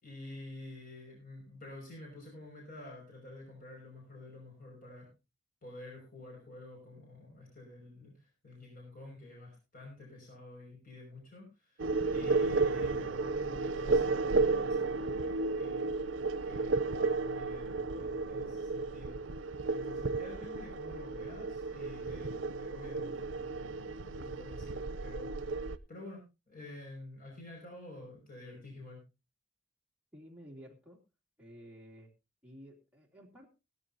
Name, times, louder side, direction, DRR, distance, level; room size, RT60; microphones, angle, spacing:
voice 1, 0.0-5.1 5.6-8.1 8.4-16.1 16.4-19.2 19.7-25.3 25.9-29.0, left 2 dB, 50° left, -1 dB, 5.6 m, -49 dB
sound 1, 11.8-25.8, right 3 dB, 90° right, 0.6 m, -33 dB
voice 2, 30.1-31.0 31.4-32.1 32.4-33.5, equal, 5° right, -3 dB, 2.9 m, -52 dB
17.5 x 13.0 x 2.7 m, 0.28 s
head